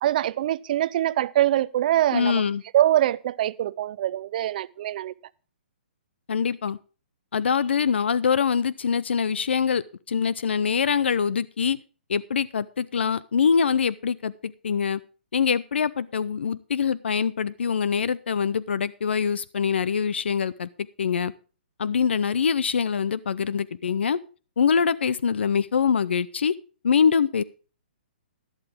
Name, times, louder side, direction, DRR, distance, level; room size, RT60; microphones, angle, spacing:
voice 1, 0.0-2.4 2.7-5.1, right 12 dB, 50° right, 0.5 m, -23 dB
voice 2, 2.1-2.6 6.3-6.8 7.3-11.8 12.1-15.0 15.3-20.7 21.0-21.3 21.8-24.2 24.6-26.5 26.8-27.4, left 6 dB, 75° left, 0.5 m, -24 dB
11.5 x 11.5 x 3.5 m
hypercardioid pair, 135°, 6 cm